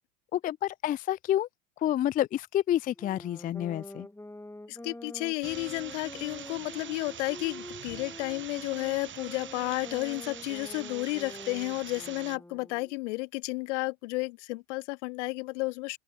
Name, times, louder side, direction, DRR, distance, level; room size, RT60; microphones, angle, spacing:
voice 1, 0.3-1.5 1.8-4.1, left 12 dB, 25° left, 0.4 m, -29 dB
sound 1, 2.9-13.0, left 1 dB, 5° left, 7.9 m, -46 dB
voice 2, 4.7-16.0, left 24 dB, 65° left, 0.9 m, -32 dB
sound 2, 5.4-12.4, right 9 dB, 30° right, 1.6 m, -44 dB
open air
hypercardioid pair, 90°, 38 cm